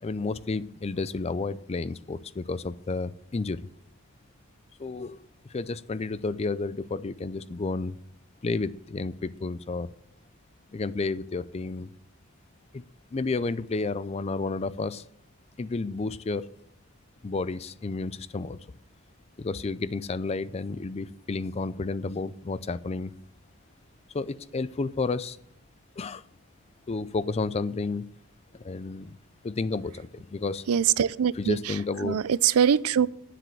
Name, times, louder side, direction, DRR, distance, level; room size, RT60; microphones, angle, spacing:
voice 1, 0.0-3.6 4.8-8.0 8.4-9.9 10.7-11.9 12.7-12.8 13.1-15.0 15.6-16.5 17.2-18.6 19.4-23.1 24.1-25.4 26.0-26.2 26.9-28.0 28.5-29.1 29.4-30.6 31.4-32.2, left 3 dB, 30° left, 0.4 m, -31 dB
voice 2, 30.7-33.1, right 8 dB, 85° right, 0.4 m, -23 dB
9.3 x 7.6 x 7.7 m
head